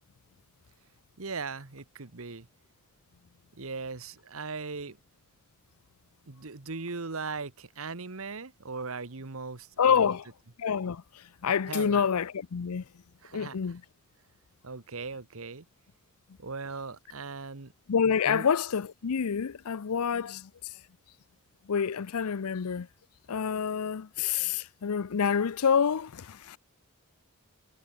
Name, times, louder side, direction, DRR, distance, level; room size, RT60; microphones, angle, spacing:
voice 1, 1.2-2.5 3.6-5.0 6.3-10.1 11.7-12.1 13.2-13.6 14.6-15.6 16.4-17.7 18.3-18.5, right 4 dB, 65° right, 1.3 m, -38 dB
voice 2, 9.8-10.3 10.6-12.8 13.3-13.8 17.9-20.7 21.7-22.9 23.3-26.6, left 7 dB, 85° left, 0.5 m, -27 dB
head